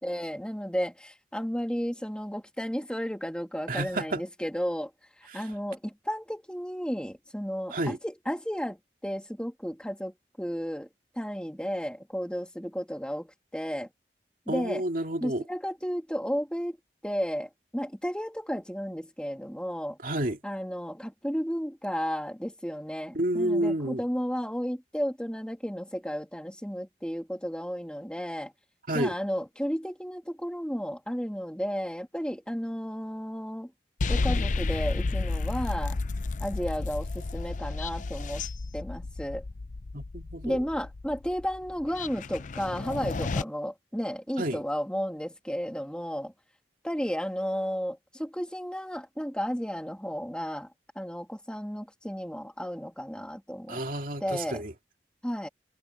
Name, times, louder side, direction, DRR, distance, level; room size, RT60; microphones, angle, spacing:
voice 1, 0.0-4.9 5.3-8.8 9.0-10.9 11.2-13.9 14.5-14.8 15.2-16.8 17.0-20.0 20.4-28.5 28.9-33.7 34.1-36.0 36.4-38.4 38.7-39.4 40.4-46.3 46.8-50.7 50.9-53.8 54.2-54.6 55.2-55.5, equal, 5° left, 2.8 m, -33 dB
voice 2, 3.7-4.2 5.3-5.4 7.7-8.0 14.5-15.4 20.0-20.4 23.1-24.0 28.9-29.2 39.9-40.6 44.4-44.6 53.7-54.7, right 1 dB, 50° right, 2.5 m, -30 dB
sound 1, 34.0-43.4, left 3 dB, 45° left, 0.5 m, -32 dB
head